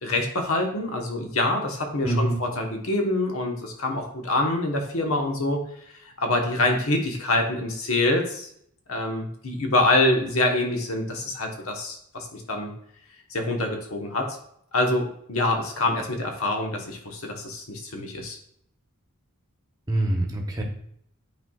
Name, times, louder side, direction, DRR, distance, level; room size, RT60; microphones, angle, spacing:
voice 1, 0.0-5.6 6.2-8.5 8.9-12.7 13.3-14.4 14.7-18.4, left 2 dB, 80° left, 2 dB, 1.2 m, -25 dB
voice 2, 2.0-2.4 19.9-20.6, right 1 dB, 15° right, 0 dB, 1.0 m, -25 dB
9.2 x 4.4 x 2.4 m, 0.68 s
head